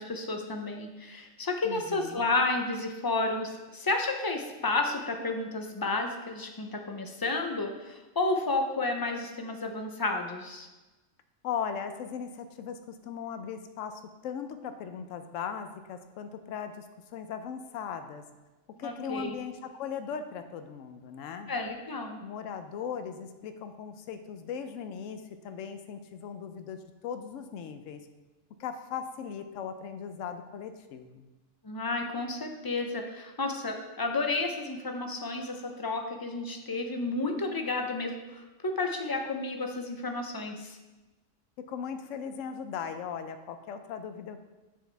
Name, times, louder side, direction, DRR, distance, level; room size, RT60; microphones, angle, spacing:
voice 1, 0.0-10.7 18.8-19.4 21.5-22.2 31.6-40.8, left 3 dB, 25° left, 4 dB, 0.5 m, -31 dB
voice 2, 1.6-2.2 11.4-16.9 17.1-18.2 18.8-21.5 22.2-28.0 28.6-31.3 41.7-44.4, left 7 dB, 85° left, 8 dB, 1.0 m, -38 dB
8.4 x 6.4 x 3.4 m, 1.1 s
omnidirectional pair, 1.3 m